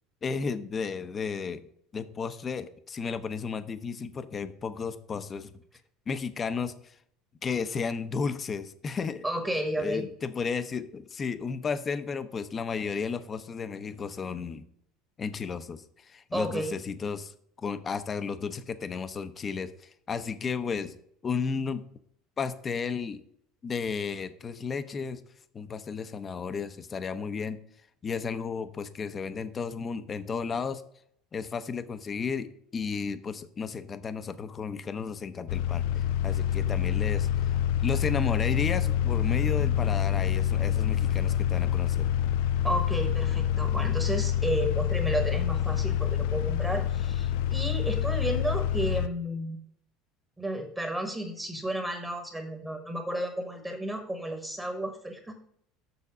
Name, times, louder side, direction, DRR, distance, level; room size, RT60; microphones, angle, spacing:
voice 1, 0.2-1.6 1.9-5.5 6.1-6.9 7.4-9.3 9.8-14.7 15.2-20.9 21.2-21.8 22.4-23.2 23.6-25.2 25.5-27.6 28.0-30.8 31.3-37.3 37.8-42.1, left 5 dB, 25° left, 12 dB, 0.7 m, -33 dB
voice 2, 9.2-10.1 16.3-16.7 42.6-49.6 50.4-55.3, right 1 dB, 10° right, 5 dB, 1.2 m, -32 dB
sound 1, 35.5-49.1, left 9 dB, 75° left, 0.4 m, -27 dB
6.9 x 6.4 x 4.9 m, 0.68 s
cardioid pair, 145°, 0 cm